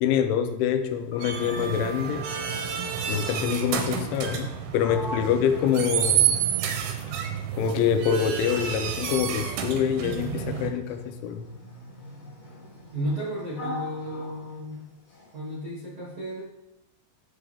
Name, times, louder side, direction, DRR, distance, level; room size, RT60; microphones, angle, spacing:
voice 1, 0.0-2.3 3.1-6.4 7.5-11.5, left 8 dB, 85° left, 8 dB, 3.1 m, -26 dB
Sliding door, 0.9-2.5 4.3-4.5 4.8-7.2 7.9-15.4, equal, 55° left, 1.4 m, -42 dB
sound 1, 1.2-10.7, right 9 dB, 80° right, 2.3 m, -29 dB
voice 2, 12.9-14.8 15.3-16.4, equal, 65° right, -7 dB, 1.0 m, -33 dB
10.0 x 5.0 x 3.5 m, 0.87 s
omnidirectional pair, 5.4 m